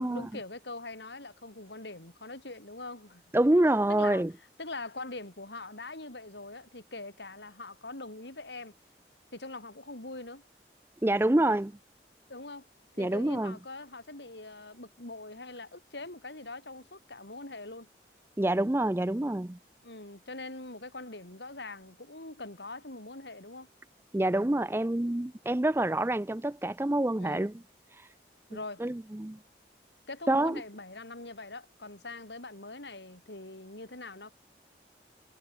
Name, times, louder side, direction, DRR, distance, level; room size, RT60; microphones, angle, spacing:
voice 1, 0.0-3.2 3.9-4.3 4.6-8.7 9.3-10.4 12.3-12.7 12.9-17.9 19.8-23.7 27.2-27.5 28.5-28.8 30.1-34.3, left 2 dB, 75° left, 4.6 m, -43 dB
voice 2, 3.3-4.3 11.0-11.7 13.0-13.5 18.4-19.6 24.1-27.5 27.9-28.1 28.8-29.4 30.3-30.6, right 1 dB, 15° right, 0.4 m, -27 dB
head